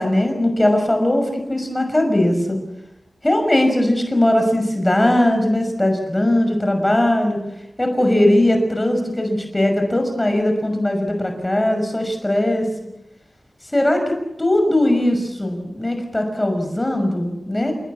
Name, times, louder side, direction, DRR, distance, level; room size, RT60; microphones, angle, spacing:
voice 1, 0.0-2.6 3.2-7.4 7.8-12.7 13.7-17.7, left 1 dB, 20° left, 5 dB, 6.0 m, -19 dB
30.0 x 18.5 x 8.5 m, 0.90 s
wide cardioid pair, 75°, 0 cm